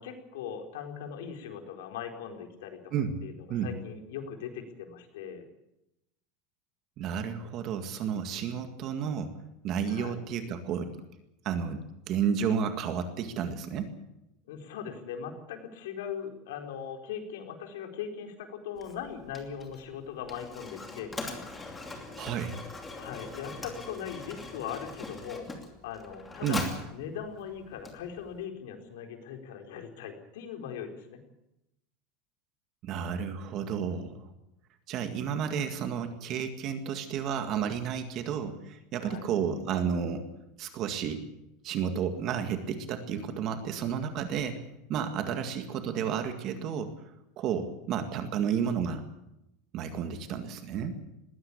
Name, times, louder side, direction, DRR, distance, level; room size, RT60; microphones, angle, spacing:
voice 1, 0.0-2.9 3.2-5.4 9.9-10.2 14.5-21.2 22.9-25.5 25.8-26.6 26.9-31.2 39.0-39.3 45.3-45.4, left 8 dB, 85° left, 4 dB, 4.5 m, -40 dB
voice 2, 7.0-9.3 9.6-10.9 11.4-13.9 22.2-22.5 26.4-26.6 32.8-34.3 34.9-40.3 40.6-41.2 41.6-44.6 44.9-46.9 47.4-49.0 49.7-51.0, right 7 dB, 35° right, 7 dB, 1.9 m, -31 dB
Mechanisms, 18.8-28.4, left 3 dB, 10° left, 2.7 m, -42 dB
20.5 x 17.0 x 8.7 m, 0.86 s
supercardioid pair, 180°, 0 cm